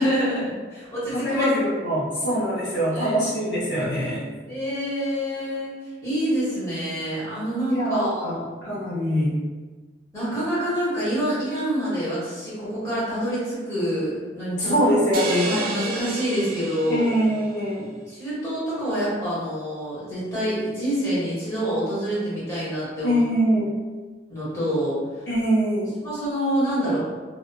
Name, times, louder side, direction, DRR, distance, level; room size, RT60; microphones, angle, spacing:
voice 1, 0.0-1.4 2.6-3.1 4.5-5.7 6.0-8.3 10.1-14.7 15.4-17.1 18.1-23.2 24.3-25.2 26.0-27.1, equal, 15° left, -10 dB, 1.2 m, -26 dB
voice 2, 1.1-4.3 7.7-9.4 14.6-15.5 16.9-17.9 23.0-23.7 25.3-25.9, equal, 70° left, -9 dB, 0.8 m, -23 dB
sound 1, 15.1-17.5, right 2 dB, 50° right, 0.3 m, -30 dB
2.8 x 2.4 x 2.2 m, 1.4 s
head